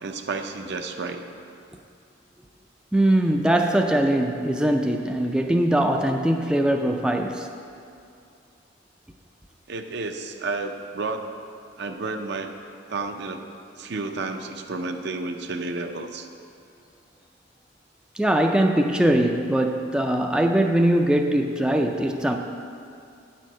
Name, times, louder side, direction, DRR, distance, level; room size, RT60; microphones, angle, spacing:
voice 1, 0.0-1.2 9.7-11.2 11.8-12.6 12.9-13.4 13.8-16.3, right 3 dB, 65° right, 6 dB, 0.6 m, -31 dB
voice 2, 2.9-7.5 18.2-22.4, right 1 dB, 5° right, 3 dB, 0.3 m, -21 dB
8.9 x 4.5 x 6.1 m, 2.4 s
head